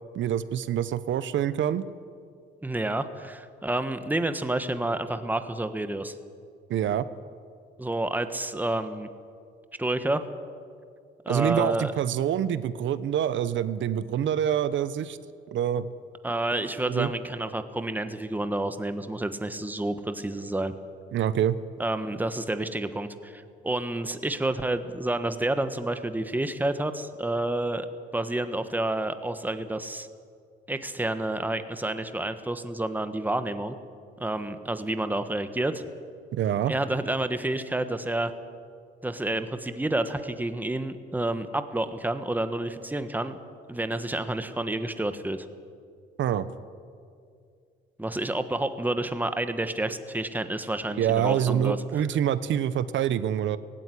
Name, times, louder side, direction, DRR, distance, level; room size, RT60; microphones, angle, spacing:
voice 1, 0.1-1.9 6.7-7.1 11.3-15.2 15.5-15.9 16.9-17.1 21.1-21.6 36.3-36.7 46.2-46.5 51.0-53.6, right 10 dB, 70° right, 15 dB, 1.0 m, -26 dB
voice 2, 2.6-6.2 7.8-9.1 9.8-10.2 11.2-11.9 16.2-20.7 21.8-27.9 28.1-30.1 30.7-33.7 34.2-35.8 36.7-38.3 39.0-43.4 43.7-45.5 48.0-51.8, right 1 dB, 10° right, 9 dB, 1.4 m, -29 dB
18.0 x 16.5 x 9.9 m, 2.3 s
cardioid pair, 90°, 20 cm